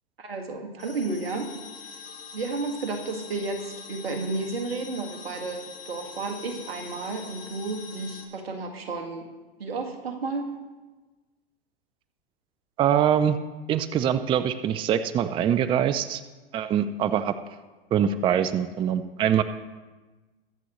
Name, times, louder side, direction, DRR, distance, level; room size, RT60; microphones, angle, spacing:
voice 1, 0.2-1.5 2.3-9.3 9.6-10.5, right 3 dB, 80° right, 4 dB, 1.8 m, -32 dB
sound 1, 0.8-8.3, left 6 dB, 75° left, 2.4 m, -43 dB
voice 2, 12.8-13.4 13.7-16.2 16.5-17.4 17.9-19.4, right 9 dB, 15° right, 12 dB, 0.4 m, -23 dB
22.5 x 7.7 x 3.1 m, 1.2 s
hypercardioid pair, 105°, 30 cm